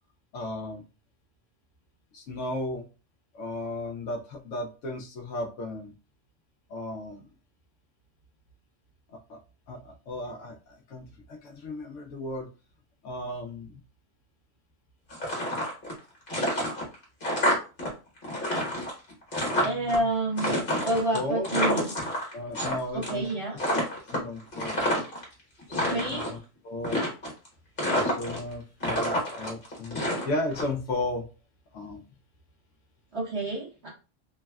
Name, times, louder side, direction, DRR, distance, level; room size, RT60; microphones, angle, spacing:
voice 1, 0.3-0.8 2.1-2.9 3.3-5.9 6.7-7.3 9.1-9.4 9.7-12.5 13.0-13.8 19.5-20.1 20.8-21.5 22.3-25.0 25.7-26.4 26.6-27.1 28.0-31.3 31.7-32.0, left 2 dB, 75° left, 2 dB, 0.9 m, -35 dB
sound 1, 15.1-16.0 16.3-17.9 18.2-20.0 20.4-22.7 23.0-23.3 23.6-25.2 25.6-26.3 26.8-27.5 27.8-28.5 28.8-30.6, equal, 45° left, 1.2 m, -28 dB
voice 2, 19.6-20.6 20.8-21.9 22.9-23.6 25.7-26.3 33.1-33.9, right 1 dB, 60° right, -5 dB, 1.0 m, -29 dB
3.3 x 2.1 x 2.2 m, 0.34 s
omnidirectional pair, 1.3 m